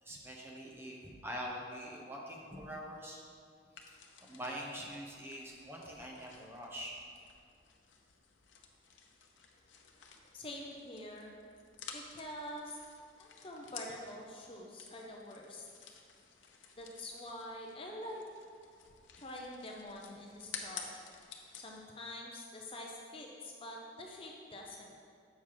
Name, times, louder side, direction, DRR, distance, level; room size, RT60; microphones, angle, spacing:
voice 1, 0.0-3.2 4.2-7.0, equal, 10° right, -2 dB, 0.9 m, -44 dB
sound 1, 3.7-21.8, left 6 dB, 80° left, 0.8 m, -53 dB
voice 2, 10.3-11.3 11.9-12.8 13.2-15.7 16.8-18.2 19.2-21.0 21.6-25.0, left 1 dB, 30° left, -1 dB, 0.6 m, -46 dB
7.4 x 5.7 x 4.8 m, 2.3 s
head